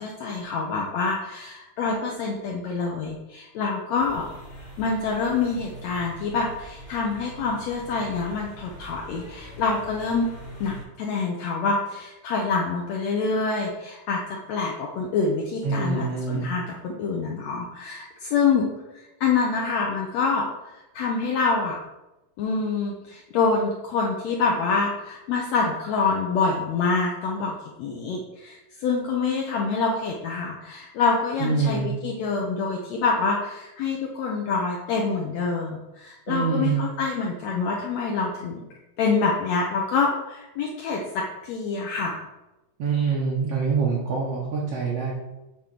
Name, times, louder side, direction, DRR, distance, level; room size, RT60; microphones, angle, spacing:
voice 1, 0.0-4.3 4.8-10.3 10.6-18.7 18.9-21.8 22.4-38.6 39.0-42.2, left 4 dB, 85° left, -1 dB, 1.5 m, -26 dB
sound 1, 3.9-10.8, equal, 35° left, 1.1 m, -43 dB
voice 2, 15.6-16.5 31.4-31.9 36.3-36.8 42.8-45.1, right 5 dB, 70° right, -3 dB, 1.5 m, -25 dB
7.0 x 3.7 x 5.9 m, 0.99 s
omnidirectional pair, 4.1 m